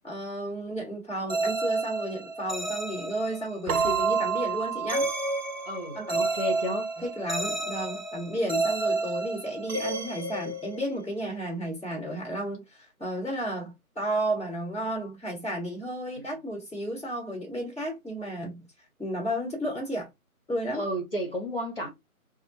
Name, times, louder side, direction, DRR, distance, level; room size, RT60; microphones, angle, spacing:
voice 1, 0.0-5.1 5.9-6.2 7.0-18.7 19.0-20.1 20.5-20.8, right 1 dB, 5° left, 1.6 m, -33 dB
sound 1, 1.3-11.1, right 2 dB, 30° right, 0.7 m, -31 dB
Keyboard (musical), 3.7-6.4, right 10 dB, 75° right, 0.6 m, -32 dB
voice 2, 5.6-6.9 20.7-21.9, equal, 40° left, 1.1 m, -32 dB
5.2 x 2.0 x 2.9 m
figure-of-eight pair, 150°, 44 cm